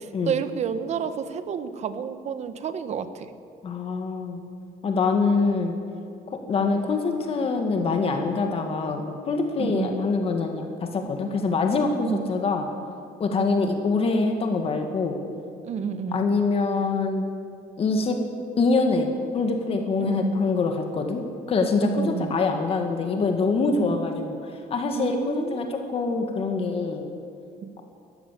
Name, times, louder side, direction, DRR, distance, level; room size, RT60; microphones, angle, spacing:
voice 1, 0.0-3.3 9.6-10.0 12.0-12.3 13.4-13.6 15.6-16.3 20.0-20.4 21.8-22.4 25.0-25.7 27.6-27.7, right 7 dB, 45° right, 11 dB, 1.2 m, -30 dB
voice 2, 3.6-4.5 4.8-5.7 6.3-12.7 13.2-15.2 16.1-17.3 17.8-18.2 18.6-21.2 21.5-27.1, left 4 dB, 40° left, 4 dB, 2.0 m, -24 dB
21.0 x 14.5 x 8.6 m, 2.4 s
cardioid pair, 165°, 15 cm